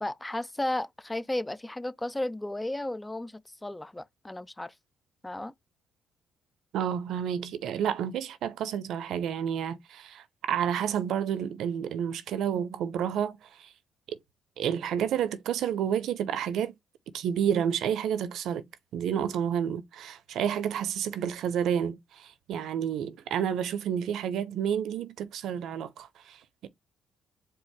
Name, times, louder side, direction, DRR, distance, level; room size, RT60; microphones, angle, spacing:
voice 1, 0.0-4.7 5.2-5.5, left 1 dB, 10° left, 0.3 m, -34 dB
voice 2, 6.7-13.7 14.6-16.7 17.1-18.6 18.9-26.7, right 9 dB, 80° right, 0.7 m, -30 dB
4.6 x 2.5 x 4.6 m
cardioid pair, 90°, 0 cm